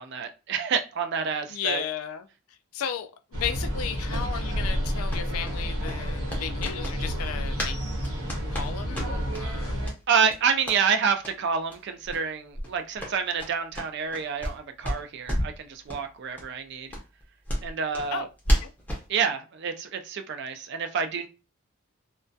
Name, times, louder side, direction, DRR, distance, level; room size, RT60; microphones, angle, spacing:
voice 1, 0.0-1.8 10.1-16.9 17.6-18.3 19.1-21.3, right 6 dB, 50° right, 0.3 m, -28 dB
voice 2, 1.5-2.3 2.7-7.8 8.5-9.8 18.1-18.7, left 8 dB, 75° left, 0.3 m, -34 dB
sound 1, 3.3-9.9, equal, 65° right, 0.9 m, -30 dB
sound 2, 5.1-7.8 8.0-9.4 9.8-10.0 10.3-10.8 11.2-11.4 11.7-11.8 12.0-12.2 12.5-14.6 14.8-15.6 15.9-16.0 16.4-16.5 16.9-19.1, equal, 5° left, 0.5 m, -31 dB
2.2 x 2.1 x 2.5 m
head